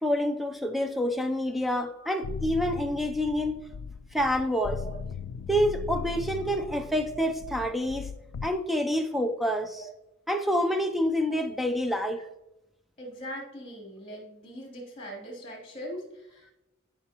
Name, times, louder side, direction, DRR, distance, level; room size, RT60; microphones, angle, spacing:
voice 1, 0.0-3.6 4.1-4.8 5.5-8.1 8.4-9.8 10.3-12.2, equal, ahead, 0.6 m, -27 dB
sound 1, 2.2-8.5, left 5 dB, 75° left, 0.3 m, -38 dB
voice 2, 11.9-12.2 13.0-16.5, equal, 30° left, 3.2 m, -41 dB
13.0 x 5.5 x 3.0 m
head